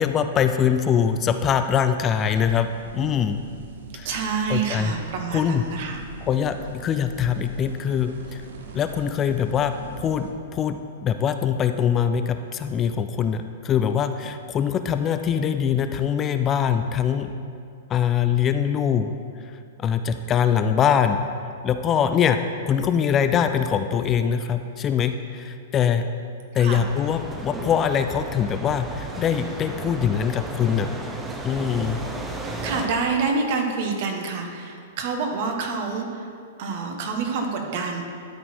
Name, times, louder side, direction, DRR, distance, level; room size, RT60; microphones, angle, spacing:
voice 1, 0.0-3.4 3.9-4.1 4.5-4.9 5.3-5.6 6.2-8.4 8.7-17.3 17.9-19.1 19.8-21.2 21.6-22.4 22.7-26.0 26.5-30.9 31.4-32.0, left 8 dB, 25° left, 8 dB, 0.4 m, -23 dB
sound 1, 2.3-10.3, right 4 dB, 80° right, 0.9 m, -42 dB
voice 2, 4.0-6.0 26.6-26.8 32.6-36.3 36.6-38.0, right 4 dB, 55° right, 3 dB, 1.2 m, -27 dB
sound 2, 26.7-32.9, right 2 dB, 10° right, 0.8 m, -34 dB
12.0 x 4.3 x 4.4 m, 2.3 s
hypercardioid pair, 130°, 0 cm